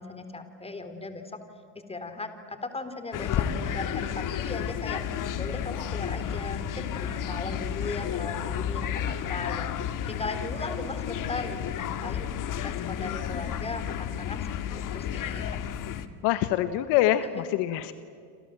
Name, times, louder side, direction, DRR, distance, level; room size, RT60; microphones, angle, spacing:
voice 1, 0.0-1.4 1.9-5.0 5.4-12.3 12.6-15.8, left 3 dB, 10° left, 8 dB, 3.5 m, -38 dB
sound 1, 3.1-16.1, left 9 dB, 40° left, 2.0 m, -32 dB
voice 2, 12.8-13.1 16.2-17.9, left 13 dB, 60° left, 11 dB, 1.5 m, -25 dB
27.5 x 27.5 x 7.7 m, 2.3 s
supercardioid pair, 100°, 46 cm